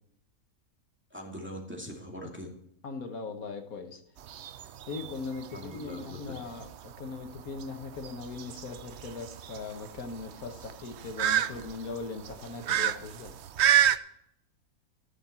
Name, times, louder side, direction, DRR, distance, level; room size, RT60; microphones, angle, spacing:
voice 1, 1.1-2.5 5.5-6.3, equal, 5° right, -1 dB, 2.3 m, -42 dB
voice 2, 2.8-4.0 4.9-13.3, left 4 dB, 70° left, 5 dB, 1.6 m, -39 dB
sound 1, 4.2-14.0, right 10 dB, 60° right, 0.7 m, -30 dB
14.5 x 7.2 x 4.3 m, 0.73 s
omnidirectional pair, 1.6 m